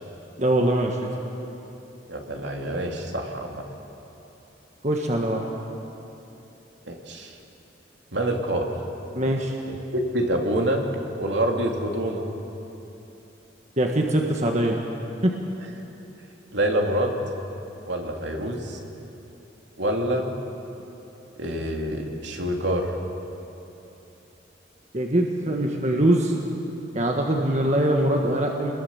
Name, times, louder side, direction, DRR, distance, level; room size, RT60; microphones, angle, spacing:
voice 1, 0.4-1.0 4.8-5.4 9.1-9.5 13.8-14.8 15.2-15.3 24.9-26.4 26.9-28.7, right 1 dB, 40° right, 1 dB, 1.6 m, -22 dB
voice 2, 2.1-3.6 6.9-7.3 8.1-8.7 10.1-10.8 11.2-12.2 16.5-17.1 17.9-18.8 19.8-20.3 21.4-22.9, right 1 dB, 75° right, 1 dB, 2.9 m, -26 dB
27.0 x 21.0 x 7.3 m, 3.0 s
head